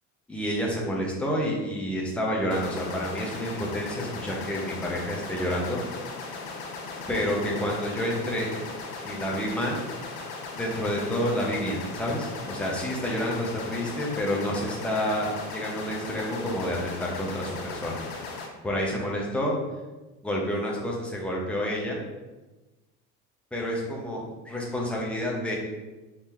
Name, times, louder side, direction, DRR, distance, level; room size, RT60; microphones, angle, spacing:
voice 1, 0.3-5.8 7.1-8.6 9.0-9.8 10.6-18.0 18.6-19.6 20.2-22.0 23.5-25.6, equal, 5° left, -3 dB, 0.5 m, -29 dB
sound 1, 2.5-18.5, left 4 dB, 85° left, 0.7 m, -38 dB
3.7 x 3.2 x 2.9 m, 1.1 s
cardioid pair, 165°, 29 cm